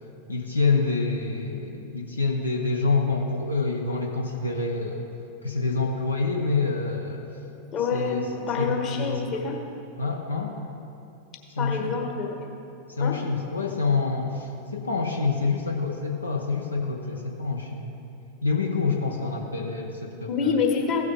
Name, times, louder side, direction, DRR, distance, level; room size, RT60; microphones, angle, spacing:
voice 1, 0.3-5.0 5.4-7.2 7.9-8.2 8.6-9.4 10.0-10.5 11.6-11.9 12.9-17.9 18.4-20.6, left 4 dB, 80° left, 1 dB, 0.8 m, -27 dB
voice 2, 7.7-9.6 11.6-12.4 13.0-13.2 20.3-21.0, left 5 dB, 30° left, 1 dB, 1.4 m, -27 dB
16.0 x 6.4 x 3.6 m, 2.8 s
figure-of-eight pair, 90°, 0 cm